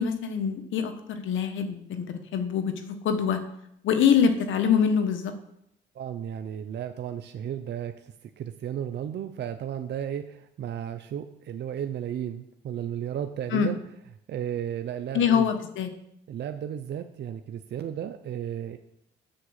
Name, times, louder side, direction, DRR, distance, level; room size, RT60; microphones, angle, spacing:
voice 1, 0.0-3.4 3.8-5.3 13.5-13.7 15.1-15.9, left 7 dB, 75° left, 8 dB, 1.3 m, -24 dB
voice 2, 5.9-13.8 14.3-15.5 16.3-18.8, right 9 dB, 60° right, 7 dB, 0.6 m, -34 dB
7.7 x 6.9 x 6.5 m, 0.77 s
cardioid pair, 90°, 20 cm